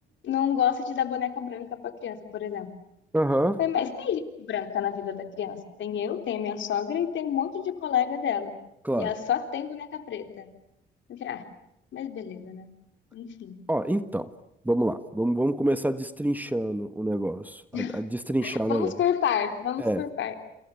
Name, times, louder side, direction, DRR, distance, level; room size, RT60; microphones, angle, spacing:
voice 1, 0.2-2.7 3.6-8.5 9.0-10.5 11.1-11.4 11.9-12.7 13.1-13.6 17.7-18.0 18.4-20.4, left 9 dB, 70° left, 7 dB, 3.6 m, -29 dB
voice 2, 3.1-3.6 8.8-9.1 13.7-14.3 14.6-18.9 19.8-20.0, right 1 dB, 10° right, 11 dB, 1.4 m, -27 dB
29.0 x 27.5 x 7.1 m, 0.78 s
cardioid pair, 90°, 20 cm